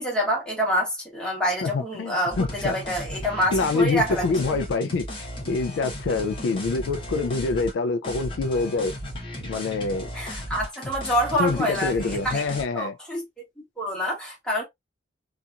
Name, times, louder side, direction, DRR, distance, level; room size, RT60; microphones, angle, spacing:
voice 1, 0.0-4.6 10.1-13.2 13.8-14.6, equal, 5° left, 1.1 m, -27 dB
voice 2, 1.6-2.8 3.5-8.9 9.4-10.1 11.4-12.9, left 3 dB, 80° left, 0.3 m, -26 dB
sound 1, 2.3-7.7 8.0-12.6, equal, 30° left, 0.9 m, -35 dB
2.8 x 2.4 x 2.3 m
head